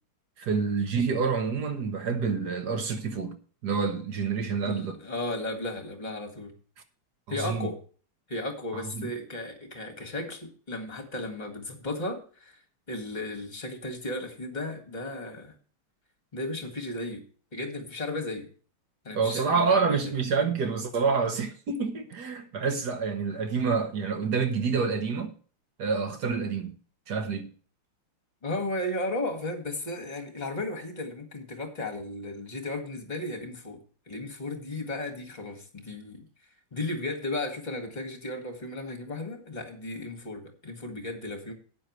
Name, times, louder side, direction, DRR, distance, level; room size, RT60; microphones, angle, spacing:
voice 1, 0.4-3.4 3.6-5.0 7.4-7.7 8.7-9.1 19.1-25.3 25.8-26.7 27.1-27.5, right 5 dB, 55° right, 1.4 m, -28 dB
voice 2, 4.6-6.5 7.3-7.8 8.3-12.6 12.9-15.5 16.3-17.2 17.5-18.5 19.0-20.0 28.4-33.8 34.1-36.3 36.7-41.5, left 2 dB, 20° left, 1.8 m, -35 dB
12.5 x 9.3 x 3.1 m
omnidirectional pair, 2.4 m